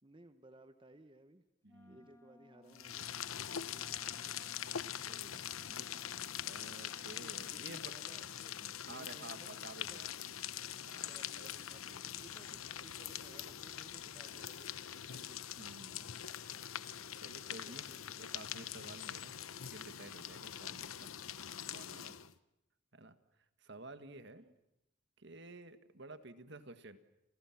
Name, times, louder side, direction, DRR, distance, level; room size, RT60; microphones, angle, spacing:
voice 1, 0.0-1.4 1.9-3.1 3.7-4.4 7.2-8.6 8.8-10.0 11.0-15.4 16.6-17.1 17.5-18.2 20.0-20.2 21.9-22.2 24.3-24.5, right 1 dB, 25° right, 9 dB, 1.1 m, -60 dB
voice 2, 1.6-2.0 5.0-5.9 6.4-8.0 8.6-10.1 10.8-11.5 15.6-16.2 16.7-16.9 17.1-17.9 18.1-21.1 21.7-22.1 22.9-23.2 23.6-24.4 25.2-27.0, right 2 dB, 55° right, 10 dB, 1.8 m, -52 dB
Wind instrument woodwind instrument, 1.7-7.7, left 1 dB, 15° left, 1.5 m, -63 dB
sound 1, 2.7-22.3, left 10 dB, 90° left, 1.0 m, -44 dB
30.0 x 28.0 x 6.0 m, 0.86 s
head